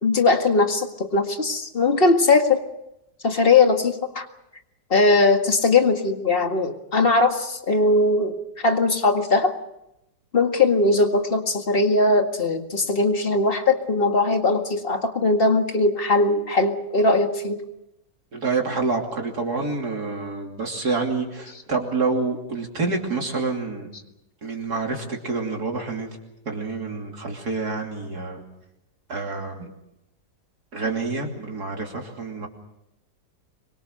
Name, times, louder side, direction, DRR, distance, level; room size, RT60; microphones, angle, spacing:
voice 1, 0.0-2.6 3.2-4.3 4.9-8.4 8.6-9.5 10.3-17.6, left 3 dB, 30° left, 5 dB, 2.1 m, -20 dB
voice 2, 18.3-23.9 24.4-26.2 26.5-28.4 29.1-29.7 30.7-32.5, right 3 dB, 60° right, 1 dB, 3.4 m, -27 dB
25.5 x 23.5 x 6.6 m, 0.87 s
omnidirectional pair, 1.9 m